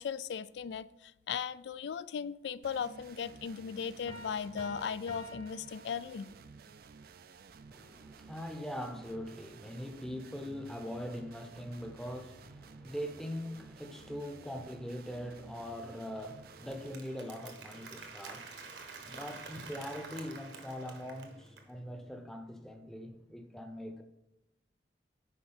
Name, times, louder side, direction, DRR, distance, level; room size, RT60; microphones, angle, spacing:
voice 1, 0.0-6.3, left 7 dB, 70° left, 0.3 m, -37 dB
sound 1, 2.6-17.0, right 5 dB, 55° right, 0.4 m, -54 dB
sound 2, 4.1-6.6, equal, 25° left, 1.0 m, -50 dB
voice 2, 7.7-24.0, equal, 5° left, 0.7 m, -42 dB
Applause, 15.9-21.7, right 4 dB, 80° right, 1.3 m, -49 dB
10.0 x 4.7 x 4.3 m
head